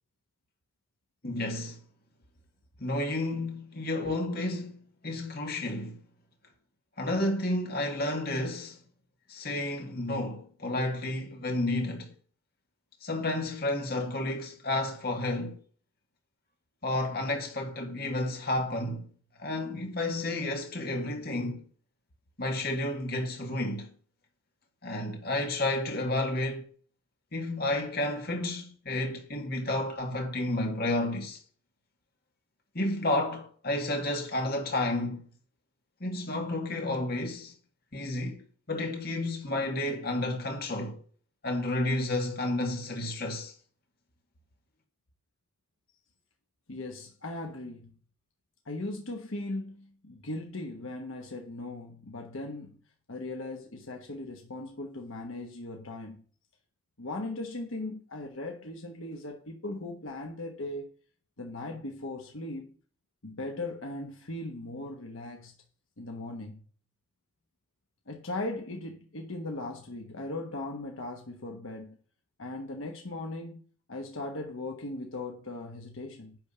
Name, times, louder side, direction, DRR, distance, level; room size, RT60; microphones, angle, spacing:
voice 1, 1.2-1.8 2.8-6.0 7.0-8.8 9.3-12.1 13.0-15.6 16.8-19.1 19.4-21.6 22.4-23.9 24.8-26.7 27.3-31.4 32.7-35.3 36.0-37.5 37.9-38.4 38.7-41.0 41.4-43.5, left 1 dB, 45° left, 2.0 m, -31 dB
voice 2, 46.7-48.0 48.6-52.8 53.1-56.2 57.0-60.9 61.4-62.7 63.2-65.5 66.0-66.6 68.1-72.0 72.4-73.6 73.9-76.4, left 2 dB, 75° left, 1.2 m, -38 dB
10.5 x 3.5 x 6.8 m
head